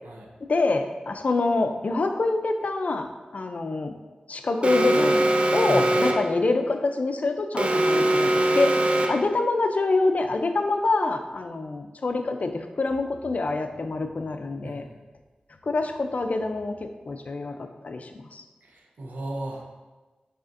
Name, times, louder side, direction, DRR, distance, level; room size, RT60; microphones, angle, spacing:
voice 1, 0.5-3.1 3.3-4.0 4.3-8.7 9.1-14.9 15.6-18.4, left 3 dB, 55° left, 6 dB, 0.4 m, -26 dB
Alarm, 4.6-6.4 7.6-9.4, right 1 dB, 40° right, 0.4 m, -22 dB
voice 2, 5.7-6.0 14.6-15.0 18.6-19.6, right 1 dB, 80° right, 0 dB, 0.7 m, -36 dB
5.1 x 4.1 x 2.5 m, 1.2 s
cardioid pair, 50°, 3 cm